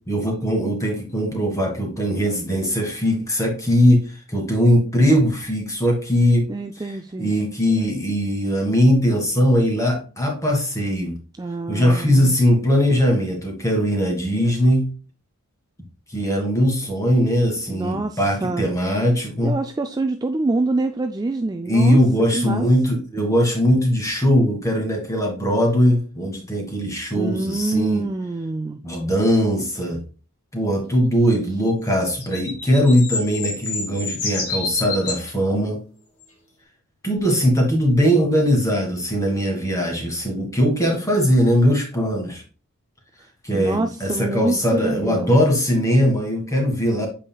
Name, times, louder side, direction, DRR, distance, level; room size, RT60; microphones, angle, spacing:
voice 1, 0.1-6.4 7.2-11.2 11.7-14.9 16.1-19.5 21.6-28.0 28.8-30.0 30.5-35.8 37.0-42.4 43.4-47.1, equal, 15° left, 2 dB, 1.7 m, -20 dB
voice 2, 6.5-7.3 11.4-12.4 17.7-18.7 19.4-22.0 22.3-22.7 27.2-28.8 43.5-45.4, right 2 dB, 15° right, 6 dB, 0.3 m, -25 dB
sound 1, 31.9-35.3 36.2-36.3, left 4 dB, 85° left, 2.4 m, -28 dB
8.2 x 5.6 x 2.3 m, 0.35 s
head